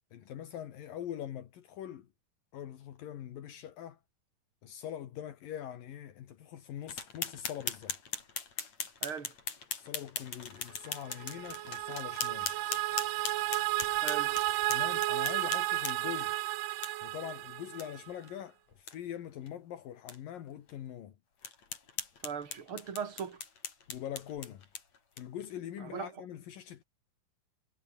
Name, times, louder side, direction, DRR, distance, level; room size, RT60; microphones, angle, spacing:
voice 1, 0.1-2.1 2.5-4.0 4.6-8.0 9.7-12.5 14.7-16.4 17.0-21.1 23.9-24.6 25.2-26.8, left 10 dB, 75° left, 3.4 m, -43 dB
sound 1, 6.9-16.2 16.8-16.9 17.3-17.4 17.8-17.9 18.2-18.3 18.7-18.9 19.5-19.6 20.1-20.2 20.7-20.8 21.4-25.5, left 6 dB, 50° left, 4.8 m, -40 dB
voice 2, 9.0-9.3 14.0-14.3 22.2-23.4 25.8-26.1, right 7 dB, 40° right, 3.3 m, -39 dB
sound 2, 10.9-18.1, right 17 dB, 75° right, 2.2 m, -33 dB
omnidirectional pair, 4.1 m